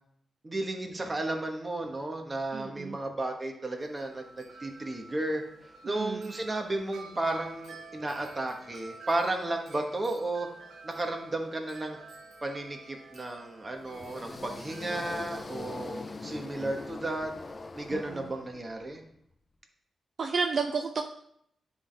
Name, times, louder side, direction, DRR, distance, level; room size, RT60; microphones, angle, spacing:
voice 1, 0.4-10.5 10.8-12.0 12.4-17.3 17.7-19.0, right 2 dB, 30° right, 3 dB, 1.2 m, -33 dB
voice 2, 2.5-3.0 5.8-6.3 17.9-18.3 20.2-21.0, right 5 dB, 55° right, 3 dB, 0.5 m, -32 dB
Wind chime, 3.7-17.1, right 3 dB, 75° right, 0.9 m, -51 dB
sound 1, 13.8-18.9, left 3 dB, 35° left, 0.4 m, -42 dB
9.8 x 3.5 x 3.3 m, 0.70 s
cardioid pair, 80°, 0 cm